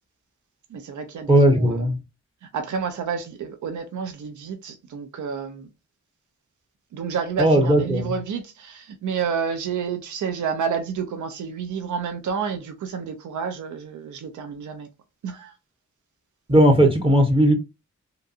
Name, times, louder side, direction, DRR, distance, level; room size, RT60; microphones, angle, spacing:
voice 1, 0.7-1.8 2.5-5.7 6.9-14.9 15.2-15.5, right 6 dB, 80° right, 0.5 m, -30 dB
voice 2, 1.3-2.0 7.4-8.1 16.5-17.5, right 1 dB, 20° right, 0.7 m, -17 dB
2.6 x 2.2 x 2.6 m
cardioid pair, 55°, 30 cm